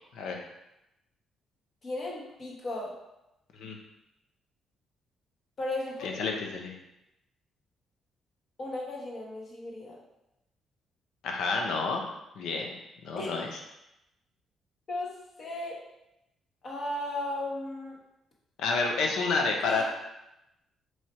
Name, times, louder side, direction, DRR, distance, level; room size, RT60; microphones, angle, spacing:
voice 1, 1.8-2.9 5.6-6.1 8.6-10.0 13.2-13.3 14.9-15.1 15.4-15.8 16.6-18.0 19.6-19.8, left 1 dB, 45° left, -2 dB, 1.1 m, -35 dB
voice 2, 6.0-6.7 11.2-12.0 12.4-12.7 13.0-13.5 18.6-19.8, left 4 dB, 80° left, 1 dB, 0.7 m, -29 dB
3.2 x 2.7 x 4.3 m, 0.89 s
cardioid pair, 90°, 0 cm